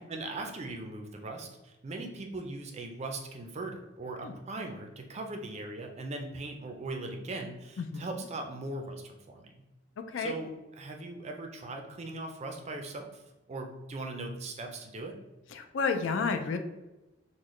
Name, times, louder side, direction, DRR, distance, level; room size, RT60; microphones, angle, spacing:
voice 1, 0.0-9.6 10.2-15.2, right 2 dB, 35° right, 3 dB, 0.4 m, -39 dB
voice 2, 7.8-8.1 10.0-10.4 15.5-16.6, left 5 dB, 65° left, 7 dB, 0.4 m, -31 dB
3.9 x 2.1 x 3.1 m, 1.0 s
head